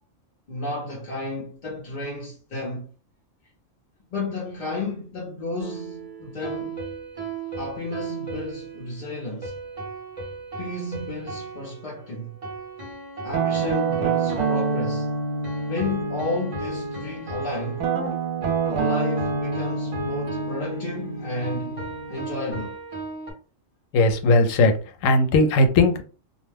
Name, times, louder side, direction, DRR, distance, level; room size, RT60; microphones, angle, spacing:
voice 1, 0.5-2.9 4.1-6.8 7.5-9.5 10.6-12.4 13.2-15.1 15.7-17.9 18.7-22.8, left 2 dB, 50° left, 0.6 m, -32 dB
sound 1, 5.6-23.3, right 3 dB, 30° right, 0.7 m, -36 dB
Guitar, 13.3-17.1 17.8-22.5, right 5 dB, 65° right, 1.0 m, -27 dB
voice 2, 23.9-24.7 25.0-26.0, left 2 dB, 80° left, 0.9 m, -18 dB
2.4 x 2.1 x 3.2 m
omnidirectional pair, 1.4 m